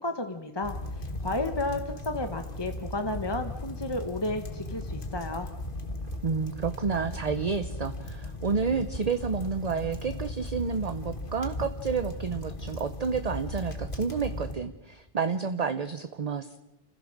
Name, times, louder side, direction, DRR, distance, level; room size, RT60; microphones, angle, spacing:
voice 1, 0.0-5.5, left 2 dB, 25° left, 6 dB, 1.2 m, -32 dB
sound 1, 0.6-14.5, left 1 dB, 55° left, 2.0 m, -37 dB
voice 2, 6.2-16.6, right 5 dB, 40° right, 10 dB, 0.9 m, -30 dB
29.0 x 15.5 x 6.5 m, 1.0 s
omnidirectional pair, 1.0 m